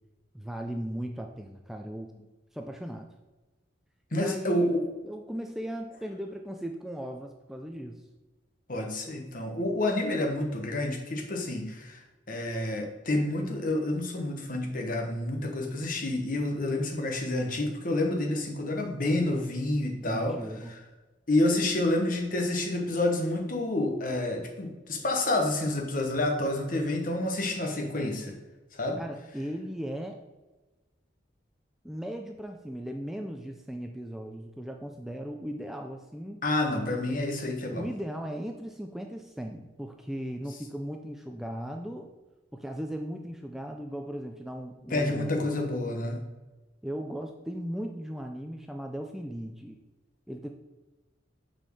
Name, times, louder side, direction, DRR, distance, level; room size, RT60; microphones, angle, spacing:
voice 1, 0.3-2.1 2.5-3.1 4.1-8.0 20.0-20.7 29.0-30.2 31.8-36.4 37.7-42.1 42.5-45.5 46.8-49.8 50.3-50.5, equal, ahead, 3 dB, 0.4 m, -37 dB
voice 2, 4.1-4.9 8.7-20.4 20.7-20.8 21.3-28.4 28.7-29.0 36.4-37.8 44.9-46.2, left 1 dB, 45° left, 2 dB, 1.2 m, -29 dB
6.2 x 4.4 x 6.4 m, 1.2 s
head